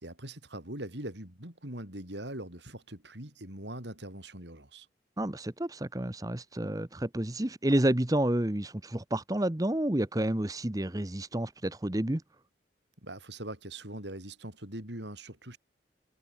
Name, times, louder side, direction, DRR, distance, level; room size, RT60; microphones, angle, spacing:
voice 1, 0.0-4.9 13.0-15.6, right 1 dB, 75° right, 6.1 m, -42 dB
voice 2, 5.2-12.2, right 1 dB, 20° right, 1.0 m, -30 dB
head